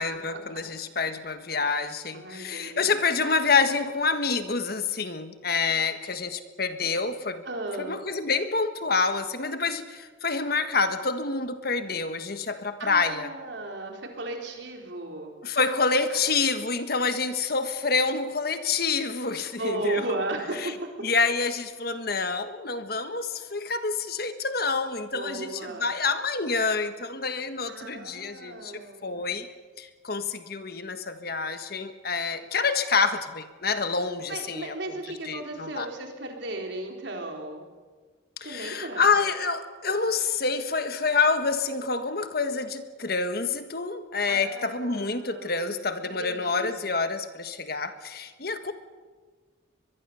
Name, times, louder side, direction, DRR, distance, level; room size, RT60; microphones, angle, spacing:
voice 1, 0.0-7.4 7.8-13.3 15.4-20.0 20.6-20.7 21.0-29.5 29.8-35.0 35.2-35.9 38.4-48.7, left 4 dB, 50° left, 9 dB, 1.5 m, -27 dB
voice 2, 1.6-1.9 2.1-2.8 7.4-7.9 12.8-15.3 16.1-16.3 19.6-20.9 25.1-25.9 27.7-29.2 34.3-37.6 38.4-39.1 44.3-45.8 46.2-46.7, right 2 dB, 65° right, 2 dB, 4.2 m, -35 dB
23.0 x 22.5 x 7.0 m, 1.4 s
head